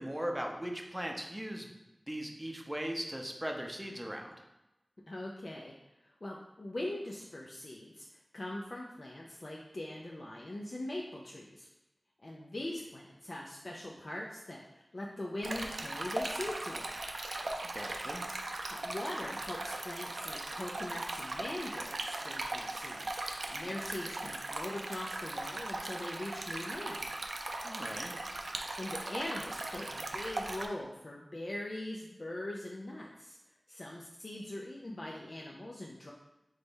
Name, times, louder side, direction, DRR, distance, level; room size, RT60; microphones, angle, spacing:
voice 1, 0.0-1.7 2.1-4.3 17.7-18.2 27.6-28.2, equal, 10° right, 1 dB, 0.7 m, -38 dB
voice 2, 5.1-5.7 6.0-11.7 12.2-17.0 18.7-23.1 23.5-27.2 28.8-33.4 33.7-36.1, left 1 dB, 55° left, -2 dB, 0.5 m, -41 dB
Stream, 15.4-30.7, right 2 dB, 85° right, 0.4 m, -39 dB
3.6 x 3.3 x 4.0 m, 0.97 s
wide cardioid pair, 55°, 0 cm